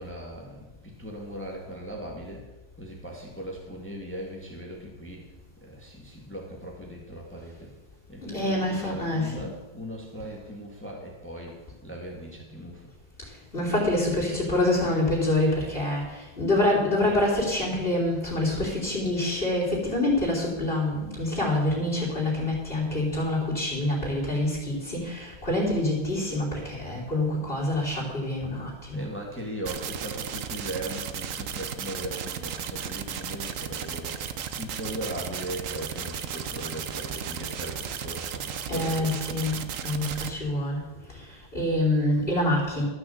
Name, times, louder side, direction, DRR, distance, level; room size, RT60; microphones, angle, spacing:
voice 1, 0.0-2.4 2.8-5.2 5.6-7.7 8.1-12.9 28.9-34.2 34.5-39.2, right 1 dB, 5° left, -1 dB, 1.8 m, -38 dB
voice 2, 8.2-9.4 13.2-29.0 38.7-40.8 41.1-42.8, left 1 dB, 30° left, -5 dB, 3.3 m, -26 dB
sound 1, 29.7-40.3, right 8 dB, 60° right, 0.9 m, -35 dB
13.5 x 6.1 x 7.8 m, 1.1 s
omnidirectional pair, 2.1 m